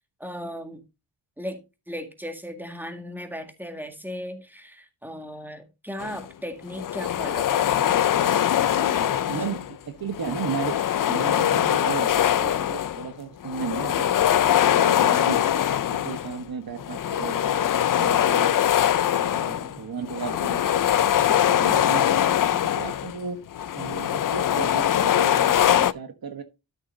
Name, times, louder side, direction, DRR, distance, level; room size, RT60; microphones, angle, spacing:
voice 1, 0.2-0.8 1.4-9.4, equal, 5° right, 1.9 m, -37 dB
sound 1, 6.0-6.2 6.7-9.7 10.1-13.1 13.4-16.4 16.8-23.2 23.5-25.9, left 10 dB, 45° left, 0.4 m, -22 dB
voice 2, 8.8-10.8 11.1-15.6 16.0-17.7 18.0-18.6 19.1-23.4 23.8-26.4, right 6 dB, 50° right, 1.3 m, -35 dB
12.5 x 6.8 x 2.7 m
wide cardioid pair, 130°, 47 cm